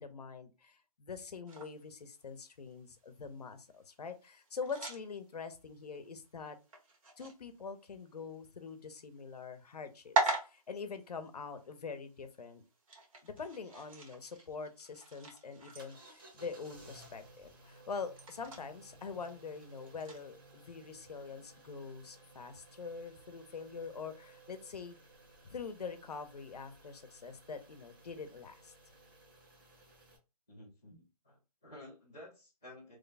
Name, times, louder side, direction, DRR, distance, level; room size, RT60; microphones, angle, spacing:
voice 1, 0.0-6.6 7.2-12.6 13.2-25.0 25.5-28.7, left 5 dB, 80° left, 9 dB, 0.8 m, -44 dB
sound 1, 1.5-20.3, right 3 dB, 60° right, 1.3 m, -43 dB
sound 2, 15.8-30.2, right 2 dB, 35° right, 1.0 m, -59 dB
voice 2, 30.5-33.0, left 1 dB, 5° left, -11 dB, 0.3 m, -53 dB
3.1 x 2.3 x 4.0 m, 0.30 s
hypercardioid pair, 170°, 20 cm